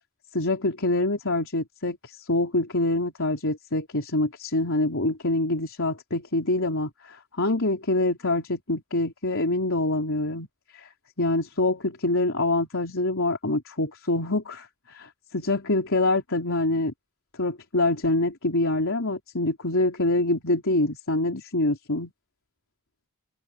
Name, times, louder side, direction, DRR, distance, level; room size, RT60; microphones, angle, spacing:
voice 1, 0.3-10.5 10.7-10.9 11.2-16.9 17.4-22.1, left 2 dB, 65° left, 4.2 m, -25 dB
open air
head